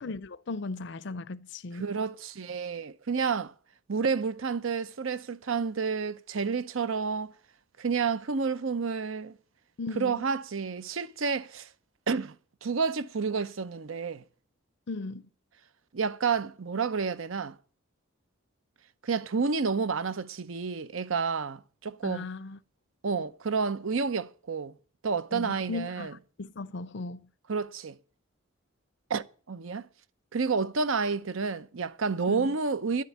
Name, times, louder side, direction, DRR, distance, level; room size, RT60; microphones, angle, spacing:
voice 1, 0.0-1.9 9.8-10.3 14.9-15.2 22.0-22.6 25.3-26.1 26.4-27.3 32.3-32.6, left 3 dB, 55° left, 0.5 m, -37 dB
voice 2, 1.8-3.5 3.9-7.3 7.8-9.3 10.0-11.7 12.1-12.3 12.6-14.2 15.9-17.6 19.0-22.3 23.0-24.7 25.0-26.1 27.5-28.0 29.1-29.9 30.3-33.0, right 5 dB, 70° right, 0.7 m, -30 dB
11.0 x 7.5 x 9.3 m
head